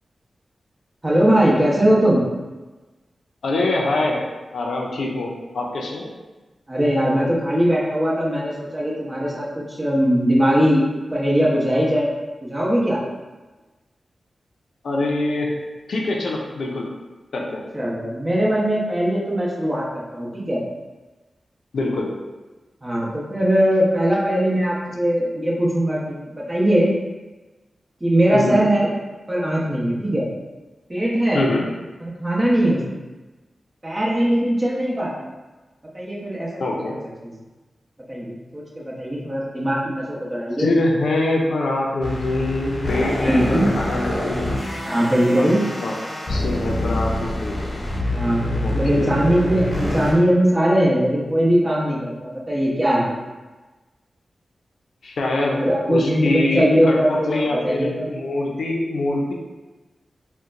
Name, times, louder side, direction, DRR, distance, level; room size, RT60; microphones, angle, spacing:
voice 1, 1.0-2.3 6.7-10.8 11.1-12.1 12.4-13.0 17.7-20.6 22.8-26.9 28.0-28.9 29.3-30.3 30.9-31.4 32.0-32.8 33.8-35.1 35.9-36.5 36.8-36.9 37.2-37.3 38.1-40.7 43.2-43.7 44.8-45.6 48.1-53.2 55.5-58.1, equal, 25° right, -6 dB, 0.9 m, -20 dB
voice 2, 3.4-4.2 4.5-6.1 14.8-15.5 15.9-16.8 17.3-17.6 21.7-22.1 28.3-28.6 31.3-31.7 36.6-37.0 40.6-44.5 45.4-45.5 45.8-45.9 46.3-47.6 48.6-49.2 55.0-59.3, left 2 dB, 85° left, -1 dB, 0.4 m, -24 dB
sound 1, 42.0-50.1, left 1 dB, 45° left, 0.7 m, -26 dB
3.9 x 2.1 x 2.5 m, 1.2 s
cardioid pair, 55°, 0 cm